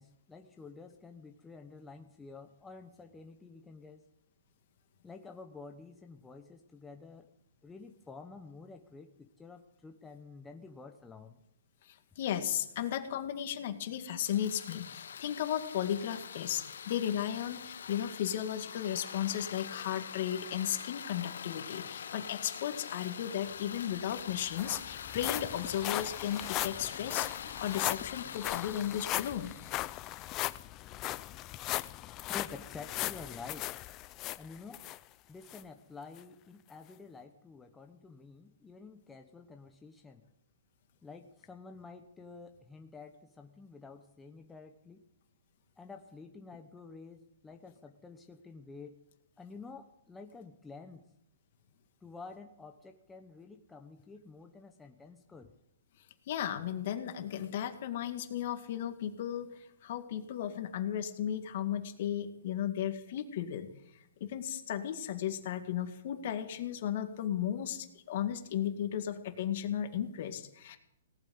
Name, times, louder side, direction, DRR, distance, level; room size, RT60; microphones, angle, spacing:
voice 1, 0.0-4.0 5.0-7.3 7.6-11.4 32.3-33.7 34.4-34.9 35.3-40.2 41.0-45.0 45.8-49.0 49.4-51.1 52.0-55.5, left 4 dB, 10° left, 4 dB, 0.9 m, -50 dB
voice 2, 11.8-29.5 56.3-63.7 64.2-70.8, left 10 dB, 50° left, 7 dB, 2.1 m, -35 dB
sound 1, 14.2-30.4, left 7 dB, 75° left, 0.7 m, -45 dB
sound 2, 23.8-23.9 24.1-35.0 35.5-35.6 36.2-36.3, left 16 dB, 25° left, 0.5 m, -38 dB
18.0 x 9.0 x 7.9 m, 0.80 s
hypercardioid pair, 150°, 0 cm